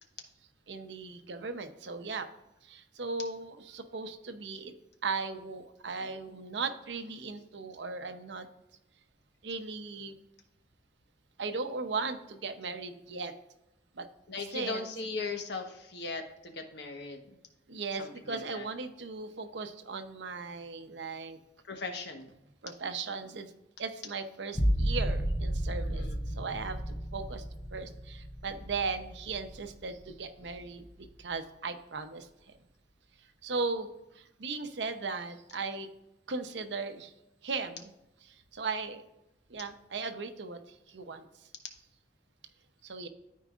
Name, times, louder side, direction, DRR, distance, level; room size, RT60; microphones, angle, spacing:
voice 1, 0.7-2.3 2.6-4.7 5.0-8.5 9.4-10.1 11.4-13.3 13.9-14.1 14.5-14.9 17.7-21.4 22.6-23.5 23.8-27.4 27.7-32.3 33.4-33.9 34.1-35.9 36.3-37.1 37.4-37.9 38.3-39.0 39.5-41.3 42.8-43.1, right 4 dB, 70° right, 8 dB, 0.8 m, -37 dB
voice 2, 14.3-17.3 18.0-18.7 21.7-22.3 25.8-26.2, left 3 dB, 65° left, 5 dB, 1.1 m, -38 dB
sound 1, 24.5-30.0 30.5-31.1, equal, 20° left, 0.7 m, -33 dB
13.0 x 4.7 x 2.4 m, 0.90 s
head